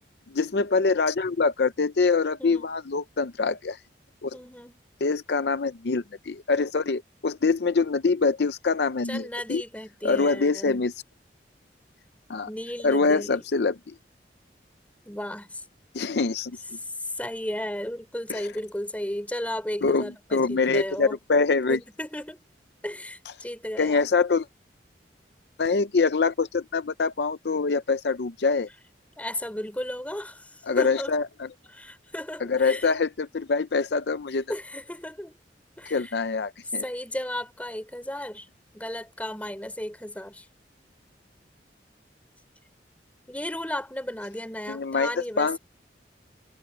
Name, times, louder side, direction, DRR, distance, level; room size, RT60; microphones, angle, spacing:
voice 1, 0.3-3.8 4.2-4.4 5.0-9.6 10.0-10.9 12.3-12.5 12.8-13.9 15.9-16.6 18.3-18.5 19.8-21.8 23.8-24.5 25.6-28.7 30.7-31.5 32.4-34.4 35.9-36.8 44.7-45.6, left 4 dB, 65° left, 0.6 m, -24 dB
voice 2, 4.3-4.8 9.1-10.9 12.5-13.4 15.1-15.6 17.0-21.2 21.7-22.4 22.8-24.0 29.2-31.2 31.7-32.9 34.5-35.4 35.8-36.1 36.8-38.5 38.7-40.5 43.3-45.6, left 1 dB, 10° left, 3.9 m, -34 dB
head